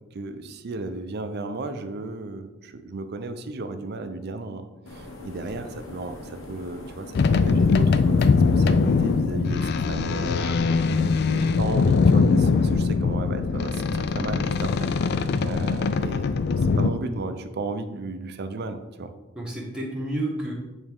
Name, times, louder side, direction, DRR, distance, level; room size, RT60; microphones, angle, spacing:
voice 1, 0.0-10.4 11.2-14.9 15.4-19.1, right 3 dB, 55° right, 9 dB, 0.5 m, -34 dB
sound 1, 4.9-9.6, left 1 dB, 75° left, 1.1 m, -42 dB
sound 2, 7.1-16.9, left 4 dB, 55° left, 0.3 m, -21 dB
voice 2, 10.3-10.7 19.3-20.5, right 1 dB, 5° right, -5 dB, 1.2 m, -31 dB
8.7 x 3.5 x 3.5 m, 1.1 s
head